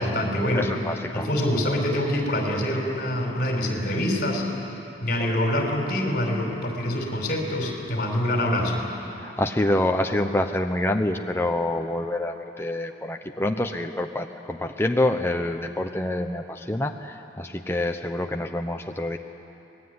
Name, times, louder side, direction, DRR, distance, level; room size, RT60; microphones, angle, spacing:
voice 1, 0.0-0.7 1.1-4.4 5.0-8.9, left 1 dB, 50° left, 1 dB, 5.4 m, -25 dB
voice 2, 0.5-1.3 9.2-19.2, left 1 dB, 15° left, 4 dB, 0.9 m, -26 dB
25.5 x 20.0 x 9.7 m, 2.9 s
head